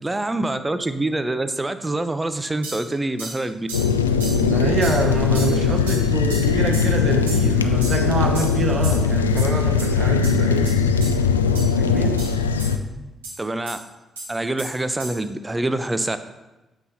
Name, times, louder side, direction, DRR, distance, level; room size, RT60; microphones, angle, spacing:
voice 1, 0.0-3.7 13.4-13.8 14.3-16.2, right 2 dB, 20° right, 10 dB, 0.6 m, -25 dB
sound 1, 2.6-2.8 3.2-3.4 3.7-3.9 4.2-4.4 4.8-5.0 5.3-5.5 5.9-6.0 6.3-6.4 6.7-6.9 7.3-7.5 7.8-8.0 8.3-8.5 8.8-9.0 9.4-9.5 9.8-9.9 10.2-10.3 10.6-10.7 11.0-11.1 11.5-11.6 12.2-12.3 12.6-12.7 13.2-13.3 13.7-13.8 14.2-14.3 14.6-14.7 15.0-15.1, right 2 dB, 90° right, 2.4 m, -34 dB
sound 2, 3.7-12.8, left 5 dB, 90° left, 0.3 m, -20 dB
voice 2, 4.4-10.7 11.7-12.2, right 2 dB, 45° right, 2 dB, 1.4 m, -25 dB
9.2 x 8.2 x 2.8 m, 1.1 s
hypercardioid pair, 40°, 0 cm